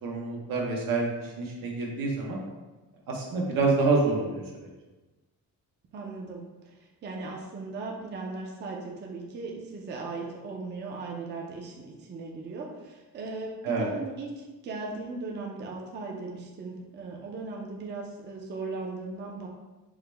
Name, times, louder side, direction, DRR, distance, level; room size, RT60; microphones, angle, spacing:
voice 1, 0.0-2.4 3.1-4.7 13.6-13.9, right 3 dB, 75° right, -2 dB, 0.9 m, -27 dB
voice 2, 5.9-6.8 7.0-19.5, right 3 dB, 30° right, -1 dB, 0.4 m, -38 dB
4.8 x 2.0 x 3.3 m, 1.2 s
cardioid pair, 170°, 34 cm